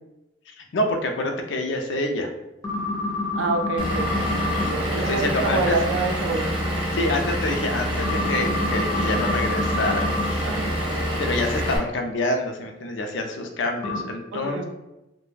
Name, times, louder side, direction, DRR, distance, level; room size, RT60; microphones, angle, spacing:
voice 1, 0.6-2.3 5.1-5.8 6.9-10.6 11.2-14.6, left 2 dB, 75° left, 4 dB, 0.4 m, -27 dB
sound 1, 2.6-4.7 8.0-10.3 13.8-14.0, left 2 dB, 20° left, 0.5 m, -27 dB
voice 2, 3.3-6.5 10.4-10.7 14.3-14.6, right 3 dB, 85° right, 4 dB, 0.4 m, -27 dB
Vehicle / Engine, 3.8-11.8, equal, 25° right, 0.5 m, -26 dB
2.3 x 2.1 x 3.2 m, 0.95 s
head